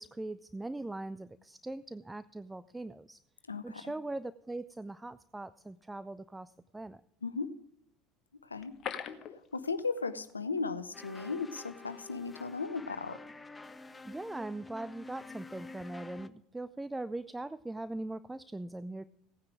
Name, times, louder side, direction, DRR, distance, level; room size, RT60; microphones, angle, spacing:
voice 1, 0.0-3.2 3.6-7.0 14.0-19.0, right 2 dB, 10° right, 15 dB, 0.4 m, -41 dB
voice 2, 3.5-3.9 7.2-7.5 8.4-8.7 9.5-13.2, left 4 dB, 85° left, 13 dB, 0.8 m, -36 dB
sound 1, 8.5-10.3 10.6-10.7 11.1-11.2, left 9 dB, 45° left, 1.1 m, -41 dB
sound 2, 10.9-16.3, left 3 dB, 15° left, 0.8 m, -49 dB
17.0 x 9.6 x 5.0 m, 0.75 s
figure-of-eight pair, 70°, 0 cm